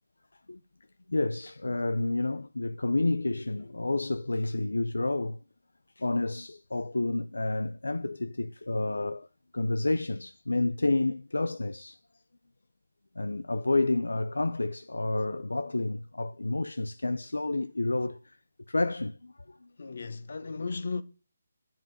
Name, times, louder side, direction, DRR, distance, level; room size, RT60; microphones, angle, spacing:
voice 1, 1.1-5.4 6.0-9.3 9.5-12.0 13.2-18.4 18.7-19.7, left 2 dB, 75° left, 0.6 m, -30 dB
voice 2, 19.8-21.0, left 4 dB, 60° left, 1.4 m, -35 dB
11.0 x 7.5 x 9.7 m
figure-of-eight pair, 150°, 0 cm